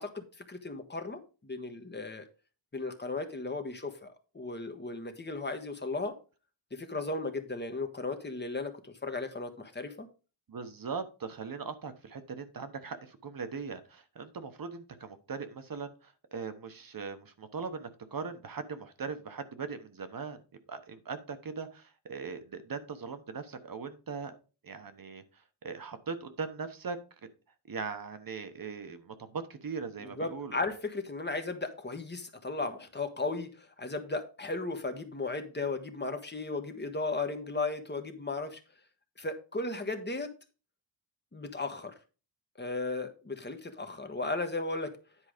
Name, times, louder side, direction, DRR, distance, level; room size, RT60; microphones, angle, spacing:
voice 1, 0.0-2.3 2.7-6.2 6.7-10.1 30.0-38.6 39.2-40.3 41.3-41.9 42.6-44.9, left 3 dB, 25° left, 6 dB, 1.3 m, -36 dB
voice 2, 10.5-20.4 20.7-24.4 24.6-27.0 27.6-30.6, right 5 dB, 50° right, 9 dB, 1.1 m, -40 dB
10.0 x 4.7 x 5.0 m, 0.34 s
wide cardioid pair, 130°, 45 cm